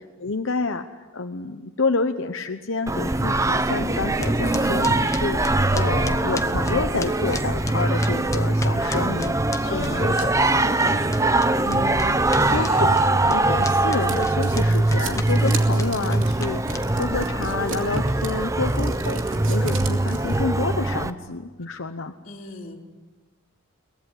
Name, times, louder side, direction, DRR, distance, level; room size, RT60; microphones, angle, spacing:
voice 1, 0.0-11.0 11.3-12.2 12.5-22.1, left 3 dB, 65° left, 6 dB, 1.0 m, -29 dB
Singing, 2.9-21.1, right 2 dB, 15° right, 0.7 m, -22 dB
sound 1, 4.2-10.5 10.8-17.2, left 3 dB, 15° left, 0.9 m, -36 dB
voice 2, 9.6-10.5 12.4-12.8 22.2-22.8, left 3 dB, 40° left, -3 dB, 3.8 m, -37 dB
sound 2, 13.1-20.4, right 4 dB, 70° right, 2.8 m, -36 dB
23.0 x 19.0 x 9.9 m, 1.3 s
head